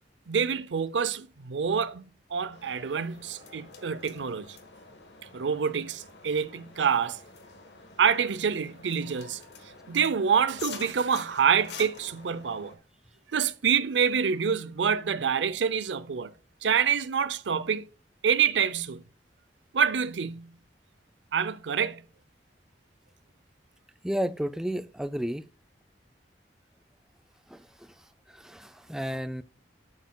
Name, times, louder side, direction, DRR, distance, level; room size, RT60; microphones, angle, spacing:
voice 1, 0.3-2.0 2.3-4.6 5.3-7.2 8.0-9.4 9.9-12.8 13.3-16.3 16.6-17.9 18.2-19.0 19.7-20.6 21.3-22.0, right 7 dB, 85° right, 0.6 m, -27 dB
sound 1, 2.5-12.8, left 5 dB, 70° left, 1.4 m, -47 dB
voice 2, 24.0-25.4 27.5-27.9 28.3-29.4, equal, 5° right, 0.3 m, -32 dB
12.0 x 6.5 x 2.3 m
head